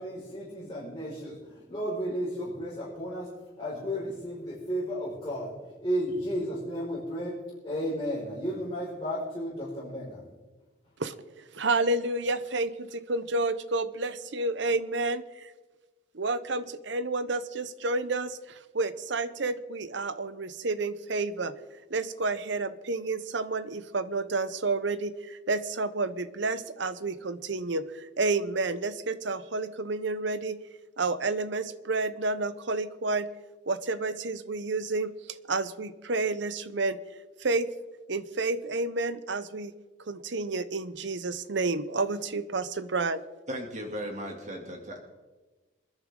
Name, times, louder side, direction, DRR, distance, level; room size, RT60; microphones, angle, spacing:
voice 1, 0.0-3.3 3.6-10.2, equal, 20° left, -9 dB, 5.2 m, -33 dB
voice 2, 11.0-15.5 16.1-21.5 21.9-30.6 31.0-33.3 33.7-37.0 37.4-37.7 38.1-39.7 40.1-43.2, right 3 dB, 65° right, 14 dB, 0.8 m, -30 dB
voice 3, 43.5-45.0, equal, 35° right, 2 dB, 2.6 m, -36 dB
26.5 x 10.5 x 3.8 m, 1.2 s
head